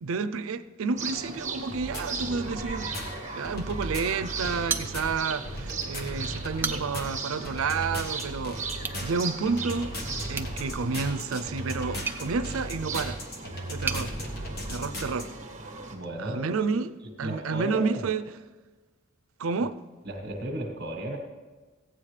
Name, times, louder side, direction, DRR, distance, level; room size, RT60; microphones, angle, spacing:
voice 1, 0.0-2.9 3.3-8.6 9.0-9.9 10.3-13.2 13.7-14.1 14.7-15.3 16.2-18.2 19.4-19.8, right 4 dB, 90° right, 0.5 m, -30 dB
sound 1, 1.0-15.9, right 4 dB, 35° right, 1.3 m, -38 dB
sound 2, 1.7-15.2, equal, 50° left, 1.4 m, -36 dB
sound 3, 4.7-5.4 5.8-5.9 6.4-7.1 8.8-9.0 10.3-14.1, right 4 dB, 10° right, 0.4 m, -36 dB
voice 2, 15.9-16.4 17.2-18.0 20.0-21.2, right 1 dB, 55° right, 1.3 m, -34 dB
15.0 x 8.9 x 3.3 m
head